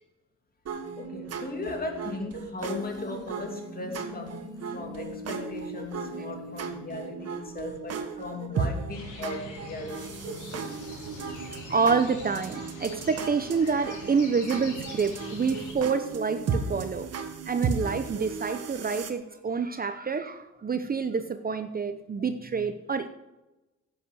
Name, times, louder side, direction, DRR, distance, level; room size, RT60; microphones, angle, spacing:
sound 1, 0.7-19.1, right 5 dB, 55° right, 1.6 m, -36 dB
voice 1, 1.0-10.7, left 3 dB, 30° left, 3 dB, 2.7 m, -37 dB
Human voice, 2.6-7.6, left 4 dB, 15° left, 2.8 m, -45 dB
sound 2, 8.9-15.7, left 3 dB, 75° left, 4.3 m, -44 dB
voice 2, 11.7-17.1 17.5-23.1, right 5 dB, 30° right, 9 dB, 0.8 m, -28 dB
10.5 x 8.1 x 6.3 m, 1.0 s
cardioid pair, 90°, 30 cm